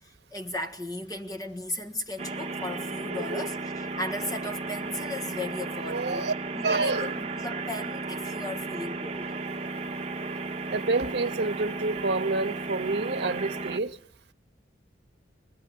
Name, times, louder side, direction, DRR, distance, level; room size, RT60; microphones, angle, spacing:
voice 1, 0.0-6.3 6.5-9.3, left 2 dB, 20° left, 1.7 m, -36 dB
sound 1, 2.2-13.8, right 3 dB, 35° right, 1.0 m, -34 dB
voice 2, 3.1-3.5 5.9-6.3 6.6-7.1 10.7-14.0, right 3 dB, 65° right, 1.0 m, -28 dB
26.0 x 20.5 x 9.5 m
head